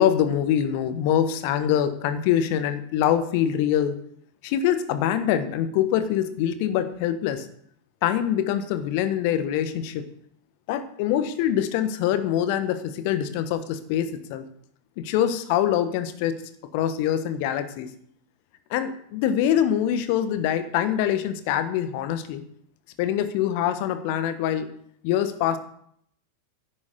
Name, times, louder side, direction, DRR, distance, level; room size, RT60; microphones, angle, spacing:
voice 1, 0.0-4.0 4.4-7.5 8.0-10.0 10.7-14.4 15.0-16.4 16.7-17.9 18.7-22.4 23.0-24.7 25.0-25.6, left 10 dB, 45° left, 11 dB, 1.2 m, -24 dB
10.5 x 8.7 x 6.8 m, 0.67 s
figure-of-eight pair, 90°, 0 cm